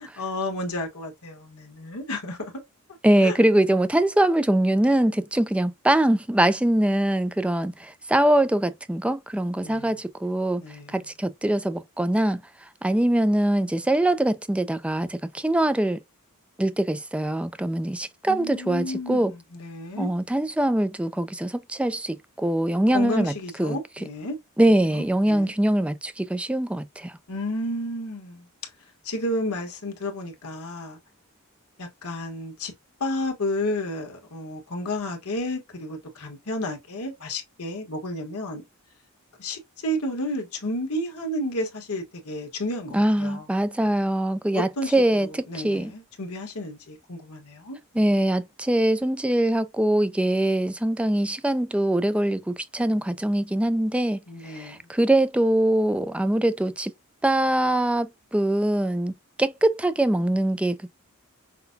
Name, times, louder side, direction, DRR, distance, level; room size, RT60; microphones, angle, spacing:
voice 1, 0.0-2.6 3.2-3.4 9.6-9.9 10.6-11.1 18.3-20.1 22.9-24.4 24.9-25.5 27.3-28.5 29.0-31.0 31.8-32.7 33.0-38.6 39.4-43.5 44.5-44.9 45.2-48.0 54.3-54.8, left 1 dB, 80° left, 1.4 m, -32 dB
voice 2, 3.0-10.6 10.9-16.0 16.6-19.3 20.0-23.3 23.6-23.8 24.6-27.1 42.9-45.9 47.9-56.9 57.2-59.1 59.4-60.9, right 1 dB, 5° right, 0.3 m, -23 dB
5.8 x 2.2 x 2.6 m
head